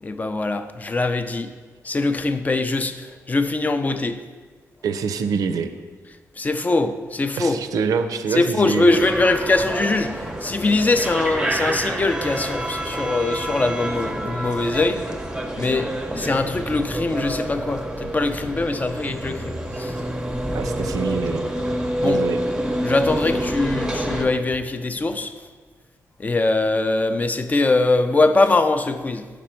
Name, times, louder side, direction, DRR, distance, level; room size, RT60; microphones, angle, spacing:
voice 1, 0.0-1.5 1.8-4.2 6.4-7.6 8.3-15.0 15.6-20.0 22.0-22.2 22.8-25.3 26.2-29.3, left 2 dB, 25° left, 9 dB, 0.4 m, -22 dB
voice 2, 4.8-5.7 7.4-9.0 20.5-21.4 22.0-22.4, right 5 dB, 90° right, 9 dB, 0.4 m, -25 dB
sound 1, 8.9-24.3, right 1 dB, 15° right, 0.6 m, -28 dB
5.2 x 5.1 x 4.4 m, 1.4 s
cardioid pair, 100°, 6 cm